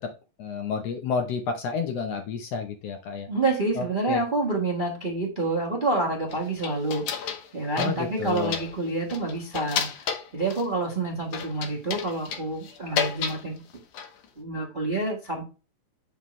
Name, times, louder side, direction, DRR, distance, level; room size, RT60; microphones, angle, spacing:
voice 1, 0.4-3.3 3.8-4.2 7.8-8.6, left 5 dB, 65° left, 5 dB, 1.7 m, -30 dB
voice 2, 3.3-13.6 14.4-15.4, right 2 dB, 25° right, -1 dB, 1.2 m, -28 dB
sound 1, 6.3-7.5 7.8-8.8 9.1-10.7 11.3-13.4 13.7-14.2, left 7 dB, 80° left, 2.5 m, -31 dB
7.3 x 5.8 x 3.2 m, 0.32 s
omnidirectional pair, 3.4 m